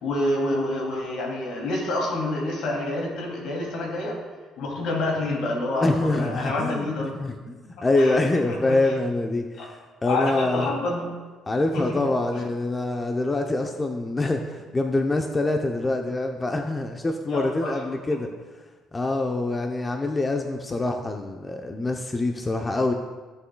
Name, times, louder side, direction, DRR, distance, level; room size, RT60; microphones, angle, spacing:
voice 1, 0.0-4.2 4.6-7.1 8.0-8.2 8.5-8.8 9.6-9.7 10.1-11.0 11.7-12.4 17.3-17.7, left 2 dB, 75° left, -1 dB, 2.6 m, -28 dB
voice 2, 5.8-10.7 11.5-18.3 18.9-22.9, left 2 dB, 20° left, 4 dB, 0.6 m, -25 dB
16.0 x 7.0 x 2.2 m, 1.3 s
cardioid pair, 115°, 0 cm